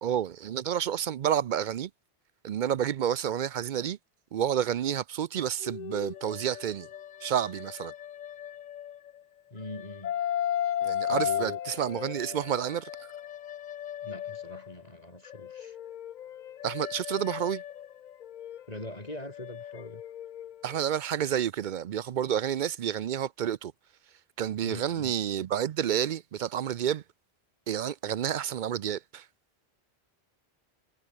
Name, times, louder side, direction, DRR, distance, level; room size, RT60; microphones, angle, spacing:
voice 1, 0.0-1.9 2.4-4.0 4.3-6.9 7.2-7.9 10.8-13.1 16.6-17.6 20.6-23.7 24.4-27.0 27.7-29.3, right 9 dB, 60° right, 0.6 m, -30 dB
sound 1, 5.6-9.2 9.6-14.8 15.3-20.8, left 10 dB, 55° left, 0.5 m, -36 dB
voice 2, 9.5-10.2 10.6-10.8 11.1-11.6 14.0-15.8 18.7-20.0 24.6-25.1, left 1 dB, 35° left, 4.2 m, -42 dB
omnidirectional pair, 1.1 m